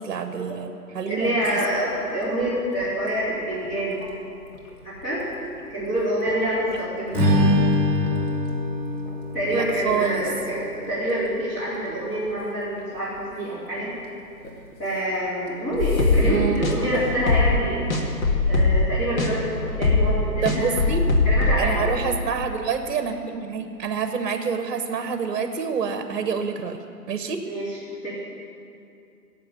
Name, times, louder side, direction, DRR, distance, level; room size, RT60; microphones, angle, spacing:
voice 1, 0.0-1.4 9.5-10.2 16.2-16.7 20.4-21.0 21.6-26.8 27.1-27.4, right 6 dB, 50° right, 7 dB, 1.1 m, -27 dB
sound 1, 1.1-18.3, left 2 dB, 85° left, 3.1 m, -37 dB
voice 2, 1.1-4.1 4.8-5.2 5.7-7.1 9.3-13.9 14.8-17.9 18.5-20.9 21.2-21.9 27.5-27.8 28.0-28.1, right 1 dB, 20° left, -12 dB, 3.9 m, -26 dB
Strum, 7.1-11.5, left 1 dB, 5° left, 2.7 m, -24 dB
sound 2, 15.8-16.3 16.6-16.7 17.1-17.6 17.9-18.9 19.2-19.3 19.7-21.6, left 3 dB, 55° left, 2.0 m, -20 dB
16.0 x 7.8 x 8.4 m, 2.5 s
hypercardioid pair, 160°, 48 cm